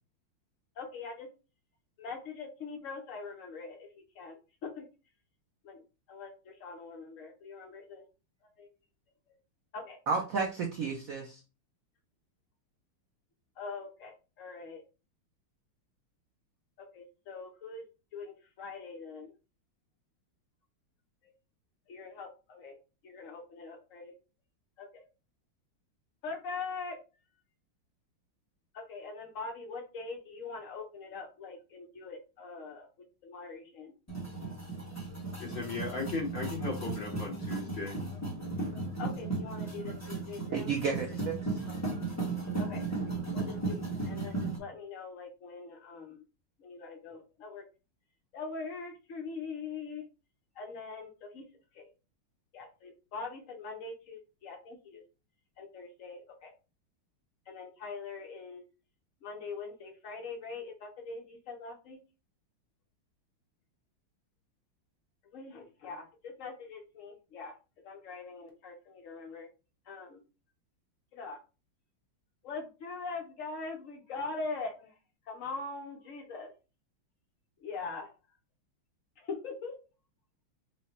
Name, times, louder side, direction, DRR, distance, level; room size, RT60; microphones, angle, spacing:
voice 1, 0.8-1.3 2.0-3.9 4.1-4.9 5.6-5.8 6.1-8.0 8.6-8.7 9.7-10.0 13.6-14.8 16.8-17.9 18.1-19.3 21.2-21.3 21.9-22.8 23.0-24.1 24.8-25.1 26.2-27.0 28.7-32.9 33.2-33.9 39.0-41.2 42.6-42.8 43.3-46.2 46.6-47.6 48.3-50.0 50.5-51.4 51.7-51.9 52.5-55.0 55.6-56.5 57.5-58.6 59.2-62.0 65.3-67.5 67.8-69.5 69.9-70.2 71.1-71.4 72.4-74.9 75.3-76.5 77.6-78.1 79.2-79.8, left 4 dB, 80° left, 2 dB, 0.7 m, -42 dB
voice 2, 10.1-11.4 40.5-41.4, right 5 dB, 80° right, 1 dB, 0.7 m, -32 dB
sound 1, 34.1-44.6, right 3 dB, 15° left, 0.6 m, -36 dB
voice 3, 35.4-38.0, left 3 dB, 60° left, -2 dB, 2.3 m, -36 dB
4.8 x 2.1 x 4.1 m, 0.32 s
omnidirectional pair, 2.3 m